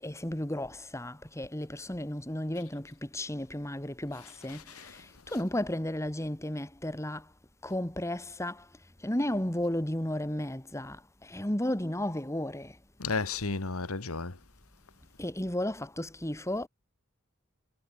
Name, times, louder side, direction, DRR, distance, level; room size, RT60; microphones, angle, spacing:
voice 1, 0.0-7.3 7.6-8.7 9.0-12.8 15.2-16.7, left 1 dB, 15° left, 2.0 m, -34 dB
voice 2, 4.5-4.9 5.3-5.4 13.0-14.3, left 4 dB, 90° left, 1.7 m, -33 dB
head